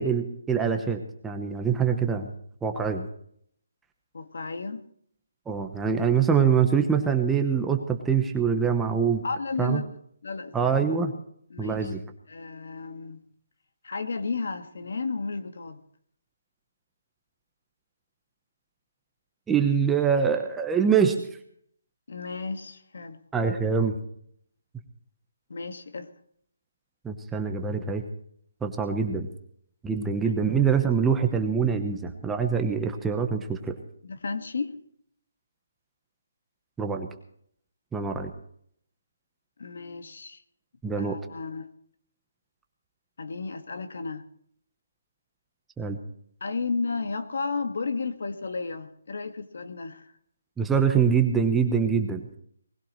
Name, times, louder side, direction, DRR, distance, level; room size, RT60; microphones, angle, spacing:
voice 1, 0.0-2.3 2.6-3.1 5.5-9.2 9.6-9.8 10.5-11.1 11.6-12.0 19.5-21.2 23.3-24.0 27.0-28.0 28.6-29.3 29.8-33.8 36.8-37.1 37.9-38.3 40.8-41.2 45.8-46.0 50.6-52.4, right 6 dB, 5° right, 5 dB, 0.9 m, -24 dB
voice 2, 4.1-4.8 9.2-9.9 10.2-10.8 11.5-11.9 12.3-13.2 13.8-15.8 22.1-23.2 25.5-26.1 30.2-30.3 34.0-34.8 39.6-40.4 40.9-41.7 43.2-44.2 46.4-50.1, left 4 dB, 65° left, 8 dB, 1.7 m, -33 dB
20.0 x 16.0 x 3.2 m, 0.65 s
hypercardioid pair, 170°, 0 cm